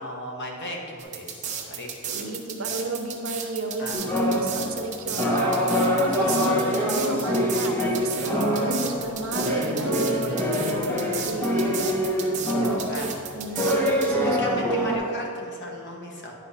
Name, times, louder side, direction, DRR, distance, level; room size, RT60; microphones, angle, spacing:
voice 1, 0.0-2.1 3.8-4.0 12.9-13.1 14.2-16.3, equal, 55° left, 0 dB, 1.4 m, -36 dB
sound 1, 1.0-14.1, right 8 dB, 35° right, 0.8 m, -34 dB
voice 2, 2.1-12.0 12.6-13.1 13.3-14.4, right 2 dB, 75° right, 4 dB, 0.9 m, -32 dB
sound 2, 3.9-15.0, equal, 10° left, 1.1 m, -25 dB
10.0 x 4.4 x 5.7 m, 2.4 s
head